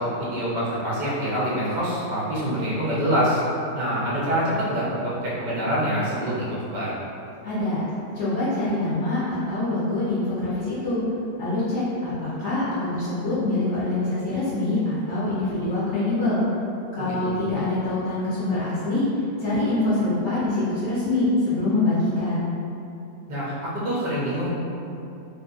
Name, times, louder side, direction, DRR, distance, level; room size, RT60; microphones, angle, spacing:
voice 1, 0.0-3.4 3.7-6.9 17.0-17.4 23.3-24.5, equal, 65° right, -8 dB, 0.4 m, -25 dB
voice 2, 7.4-7.8 8.1-11.0 11.4-16.4 16.9-19.1 19.4-22.5, left 2 dB, 65° left, -10 dB, 0.7 m, -25 dB
3.0 x 2.5 x 2.4 m, 2.7 s
omnidirectional pair, 1.8 m